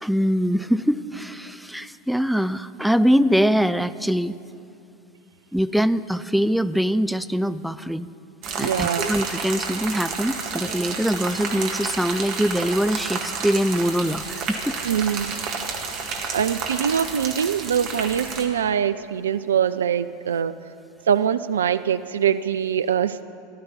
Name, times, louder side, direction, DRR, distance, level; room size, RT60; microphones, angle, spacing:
voice 1, 0.0-4.4 5.5-8.1 8.6-14.8, equal, ahead, 13 dB, 0.4 m, -23 dB
sound 1, 8.4-18.5, right 5 dB, 45° right, 1.9 m, -30 dB
voice 2, 8.6-9.1 14.8-15.4 15.8-15.9 16.3-20.5 21.1-23.2, right 8 dB, 70° right, 13 dB, 0.3 m, -23 dB
14.5 x 12.0 x 7.3 m, 2.6 s
figure-of-eight pair, 80°, 0 cm